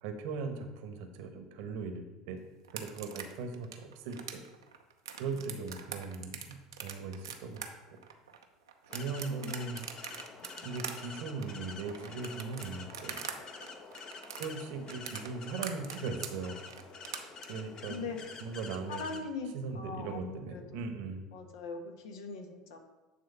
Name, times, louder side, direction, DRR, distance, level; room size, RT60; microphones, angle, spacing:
voice 1, 0.0-2.4 2.7-4.4 5.2-7.7 8.9-9.8 10.6-13.2 14.4-16.6 17.1-18.0 18.4-19.0 19.5-21.3, right 4 dB, 65° right, 6 dB, 1.1 m, -39 dB
sound 1, 2.6-13.4 13.6-17.5, right 7 dB, 85° right, 0.8 m, -43 dB
sound 2, 8.9-19.2, left 4 dB, 40° left, 1.0 m, -48 dB
voice 2, 18.9-20.9 21.3-22.8, left 4 dB, 70° left, 4 dB, 1.3 m, -41 dB
10.0 x 3.8 x 5.5 m, 1.2 s
hypercardioid pair, 75°, 2 cm